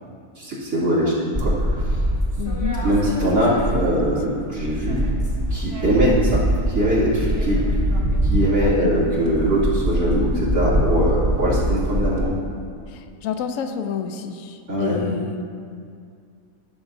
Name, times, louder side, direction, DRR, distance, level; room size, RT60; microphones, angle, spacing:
voice 1, 0.4-2.0 2.8-5.0 5.5-7.6 8.2-12.3 14.7-15.0, equal, 70° right, -8 dB, 3.0 m, -22 dB
sound 1, 1.3-4.2 4.5-12.2, right 1 dB, 15° right, 0.9 m, -23 dB
voice 2, 2.4-2.8 8.6-8.9 12.9-15.4, left 7 dB, 70° left, 8 dB, 0.9 m, -29 dB
13.5 x 7.1 x 2.6 m, 2.2 s
omnidirectional pair, 1.6 m